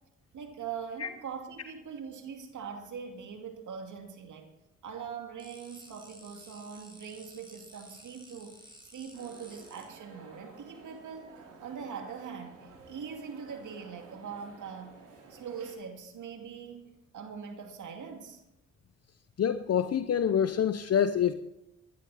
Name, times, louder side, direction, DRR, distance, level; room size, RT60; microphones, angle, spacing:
voice 1, 0.3-4.5 4.8-8.6 8.8-11.3 11.6-15.0 15.3-18.4, right 6 dB, 75° right, 4 dB, 2.4 m, -42 dB
sound 1, 5.4-9.8, right 1 dB, 15° right, 6.1 m, -54 dB
sound 2, 9.1-15.7, right 4 dB, 90° right, 2.9 m, -53 dB
voice 2, 19.4-21.3, left 8 dB, 50° left, 10 dB, 0.8 m, -26 dB
17.5 x 11.0 x 4.2 m, 0.90 s
supercardioid pair, 50°, 31 cm